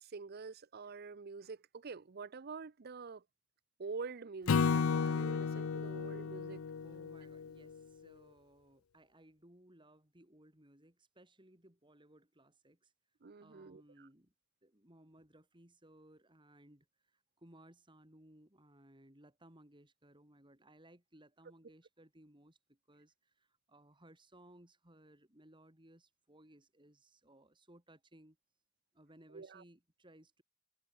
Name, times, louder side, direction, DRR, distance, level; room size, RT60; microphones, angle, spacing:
voice 1, 0.0-3.2 3.8-6.7 13.2-14.1 29.3-29.6, right 4 dB, 50° right, 0.6 m, -46 dB
Acoustic guitar / Strum, 4.5-7.8, left 5 dB, 85° left, 0.5 m, -33 dB
voice 2, 6.8-12.9 13.4-14.3 14.6-28.4 28.9-30.4, right 1 dB, 25° right, 5.5 m, -62 dB
head